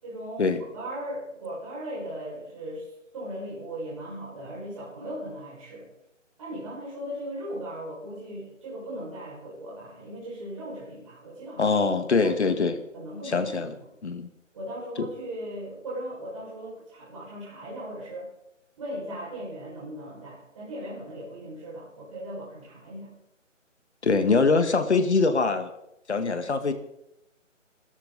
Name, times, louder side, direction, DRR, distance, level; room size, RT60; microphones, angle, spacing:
voice 1, 0.0-5.9 6.4-11.8 12.1-12.5 12.9-13.7 14.5-18.3 18.8-23.1, right 1 dB, 25° right, -6 dB, 6.1 m, -38 dB
voice 2, 11.6-12.8 13.3-13.7 14.0-14.3 15.0-15.1 24.0-25.7 26.1-26.7, left 4 dB, 60° left, 8 dB, 2.0 m, -23 dB
24.5 x 13.0 x 4.2 m, 0.82 s
hypercardioid pair, 170°, 38 cm